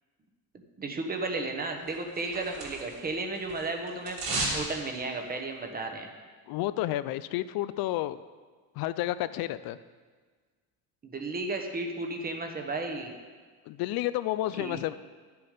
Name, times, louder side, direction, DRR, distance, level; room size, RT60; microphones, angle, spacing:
voice 1, 0.8-4.2 4.5-6.1 11.0-13.1 14.6-14.8, right 3 dB, 25° right, 4 dB, 1.2 m, -33 dB
sound 1, 1.9-3.1 3.3-4.6 4.9-5.0, right 2 dB, 65° right, 3.2 m, -33 dB
voice 2, 6.5-8.2 8.8-9.8 13.7-14.9, left 15 dB, 65° left, 14 dB, 0.5 m, -30 dB
12.0 x 7.0 x 5.0 m, 1.5 s
cardioid pair, 150°, 38 cm